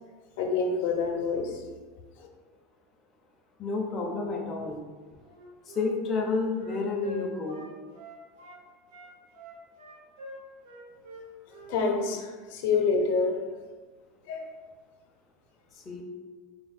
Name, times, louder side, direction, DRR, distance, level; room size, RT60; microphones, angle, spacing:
voice 1, 0.4-1.6 2.2-2.3 11.7-13.4 14.2-14.5, left 4 dB, 70° left, 2 dB, 0.6 m, -27 dB
voice 2, 3.6-4.8 5.6-7.6 15.7-16.0, left 3 dB, 20° left, -1 dB, 0.4 m, -30 dB
Wind instrument woodwind instrument, 5.2-8.6 8.9-12.2, left 1 dB, 90° right, 1.0 m, -45 dB
4.2 x 2.1 x 4.1 m, 1.4 s
supercardioid pair, 175°, 0 cm